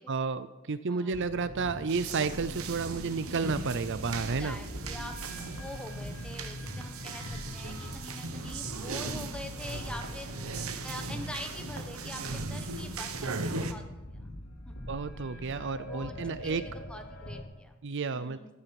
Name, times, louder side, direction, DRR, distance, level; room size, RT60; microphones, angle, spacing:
voice 1, 0.0-4.6 14.9-16.6 17.8-18.5, right 4 dB, 55° right, 13 dB, 0.6 m, -31 dB
voice 2, 0.9-1.2 4.2-5.2 5.5-10.3 10.8-13.3 13.6-14.3 14.7-14.8 15.9-16.2 16.4-17.8 18.1-18.5, left 1 dB, 5° left, 4 dB, 1.3 m, -44 dB
sound 1, 1.1-17.4, left 1 dB, 85° left, 3.1 m, -43 dB
sound 2, 1.9-13.7, right 3 dB, 75° right, 1.1 m, -38 dB
15.0 x 11.5 x 6.0 m, 1.0 s
head